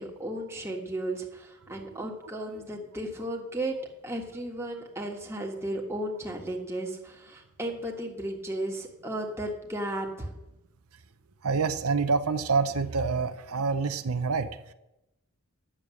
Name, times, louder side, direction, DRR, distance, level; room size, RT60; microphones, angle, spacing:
voice 1, 0.0-3.8 4.0-10.4, right 1 dB, 10° right, 0 dB, 1.5 m, -34 dB
voice 2, 11.4-14.7, right 4 dB, 90° right, 9 dB, 0.7 m, -27 dB
10.0 x 7.1 x 7.5 m, 0.92 s
head